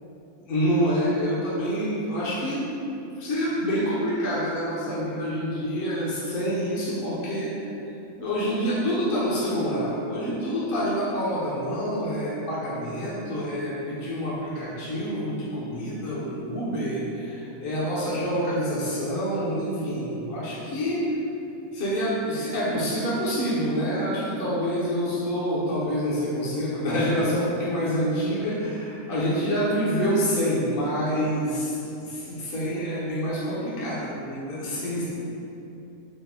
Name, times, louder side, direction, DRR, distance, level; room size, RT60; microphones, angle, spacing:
voice 1, 0.4-2.8 3.2-7.7 8.2-21.2 21.7-35.2, equal, 50° left, -8 dB, 0.7 m, -27 dB
4.2 x 2.1 x 3.4 m, 2.9 s
omnidirectional pair, 1.5 m